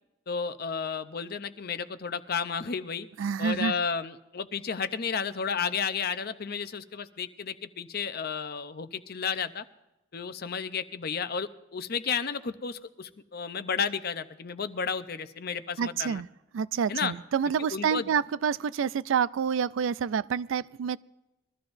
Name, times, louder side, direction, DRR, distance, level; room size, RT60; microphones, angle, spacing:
voice 1, 0.3-3.1 3.4-9.6 10.1-16.2 16.9-17.1 17.7-18.1, left 6 dB, 50° left, 0.6 m, -32 dB
voice 2, 3.2-3.7 15.8-16.3 16.5-21.0, right 7 dB, 80° right, 0.3 m, -28 dB
22.0 x 13.5 x 2.6 m
head